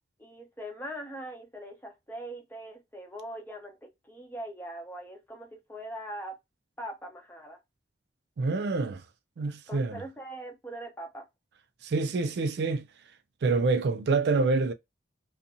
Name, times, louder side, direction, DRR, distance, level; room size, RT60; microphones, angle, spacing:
voice 1, 0.2-6.4 6.8-7.6 9.7-11.2, right 1 dB, 10° left, 0.6 m, -41 dB
voice 2, 8.4-9.0 9.4-10.0 11.8-12.8 13.4-14.7, right 3 dB, 60° right, 0.3 m, -26 dB
2.5 x 2.3 x 2.6 m
head